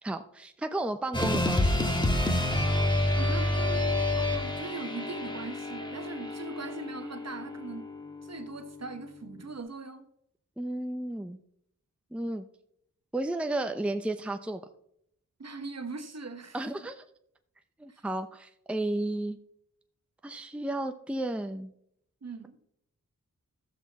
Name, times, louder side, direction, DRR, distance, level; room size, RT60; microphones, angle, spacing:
voice 1, 0.0-2.1 10.6-11.4 12.1-12.4 13.1-14.6 16.5-17.0 17.8-19.4 20.2-21.7, right 1 dB, 5° right, 0.6 m, -33 dB
sound 1, 1.1-9.5, left 1 dB, 15° left, 1.7 m, -29 dB
voice 2, 3.2-7.9 8.2-10.1 15.4-16.6 17.9-18.0 22.2-22.6, right 3 dB, 50° right, 1.2 m, -40 dB
12.5 x 7.2 x 4.1 m
cardioid pair, 55°, 33 cm